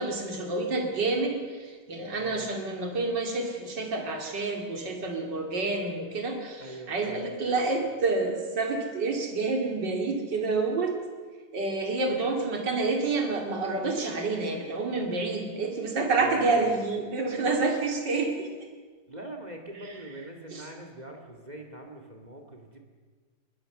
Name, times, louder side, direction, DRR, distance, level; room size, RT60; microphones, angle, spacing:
voice 1, 0.0-10.9 11.5-18.5 20.5-20.7, right 3 dB, 80° right, 2 dB, 3.2 m, -28 dB
voice 2, 2.2-2.5 6.6-7.4 16.2-16.7 19.1-22.8, right 1 dB, 25° right, 3 dB, 2.5 m, -43 dB
21.5 x 19.5 x 6.7 m, 1.5 s
omnidirectional pair, 1.9 m